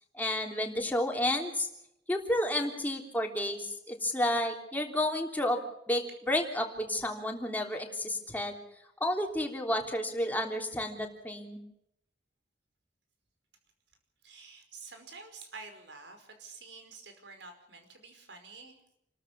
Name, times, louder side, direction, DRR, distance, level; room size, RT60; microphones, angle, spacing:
voice 1, 0.1-1.7 2.1-5.6 5.9-8.6 9.0-11.6, left 1 dB, 10° left, 2 dB, 3.4 m, -31 dB
voice 2, 14.2-19.0, right 4 dB, 80° right, 6 dB, 5.1 m, -49 dB
29.0 x 13.5 x 7.2 m, 0.80 s
head